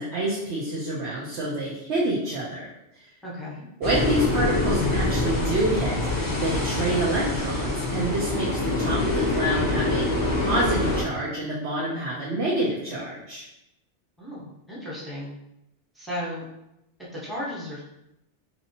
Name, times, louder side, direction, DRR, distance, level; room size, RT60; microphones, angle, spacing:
voice 1, 0.0-2.7 3.8-6.0 6.4-10.0 10.4-13.4, right 1 dB, 70° right, -5 dB, 1.0 m, -27 dB
voice 2, 3.2-3.7 14.2-14.4 14.7-15.3 15.9-16.4 17.2-17.8, left 1 dB, ahead, -7 dB, 1.1 m, -34 dB
sound 1, 3.8-11.0, left 2 dB, 20° left, 0.8 m, -25 dB
4.2 x 2.9 x 2.8 m, 0.85 s
omnidirectional pair, 1.2 m